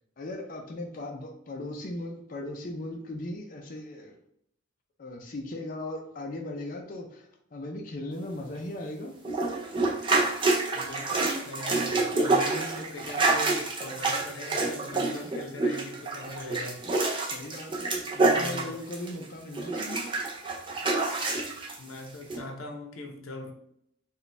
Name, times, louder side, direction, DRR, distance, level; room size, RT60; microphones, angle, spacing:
voice 1, 0.2-4.2 5.0-9.2 17.3-20.1, left 1 dB, 40° left, 0.5 m, -38 dB
sound 1, 9.2-19.2 19.5-21.8 22.3-22.4, right 3 dB, 25° right, 0.5 m, -27 dB
voice 2, 10.7-16.8 18.3-18.8 21.8-23.5, left 2 dB, 90° left, 0.7 m, -41 dB
4.0 x 2.3 x 3.3 m
head